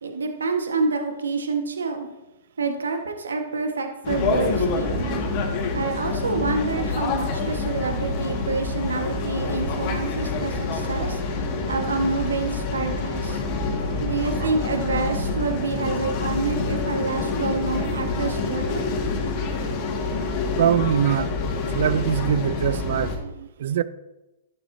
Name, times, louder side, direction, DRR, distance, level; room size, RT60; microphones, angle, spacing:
voice 1, 0.0-2.1 2.6-5.2 5.7-11.2 11.7-13.4 14.0-18.8, right 4 dB, 85° right, 1.5 m, -27 dB
sound 1, 4.0-23.2, left 3 dB, 40° left, 2.1 m, -27 dB
voice 2, 20.6-21.3 21.7-23.8, right 9 dB, 65° right, 0.5 m, -23 dB
11.5 x 11.0 x 2.8 m
hypercardioid pair, 125°, 0 cm